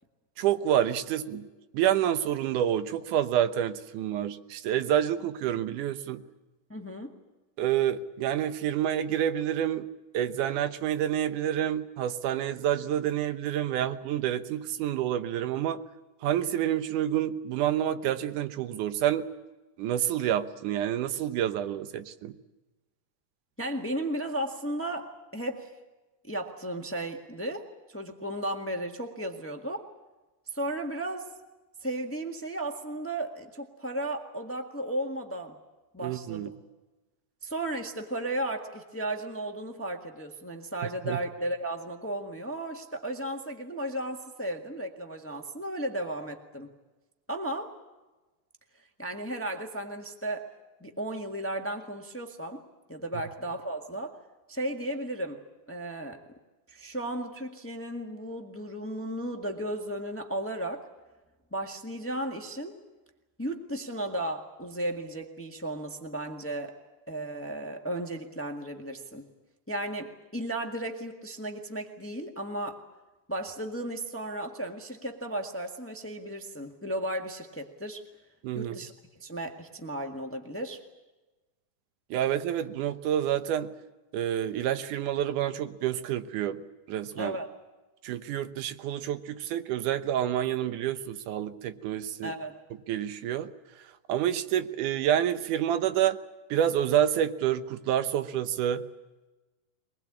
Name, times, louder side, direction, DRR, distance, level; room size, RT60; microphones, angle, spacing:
voice 1, 0.4-1.5 1.7-6.2 7.6-9.9 10.1-15.8 16.2-19.3 19.8-22.4 36.0-36.5 41.1-41.2 78.4-78.8 82.1-83.7 84.1-86.6 86.9-87.4 88.0-92.3 92.9-93.5 93.8-96.2 96.5-98.8, right 10 dB, 75° right, 11 dB, 2.5 m, -28 dB
voice 2, 6.7-7.1 23.6-25.7 26.2-29.8 30.5-31.3 31.8-35.6 35.9-36.5 37.4-46.7 47.3-47.7 49.0-50.5 50.8-52.6 52.9-54.2 54.5-55.4 55.7-56.2 56.7-60.9 61.5-62.8 63.4-66.8 67.1-69.3 69.7-72.8 73.3-78.0 78.5-78.9 79.2-80.8 87.2-87.5 92.2-92.5, right 1 dB, 20° left, 4 dB, 0.4 m, -34 dB
23.0 x 20.5 x 8.7 m, 1.2 s
omnidirectional pair, 3.7 m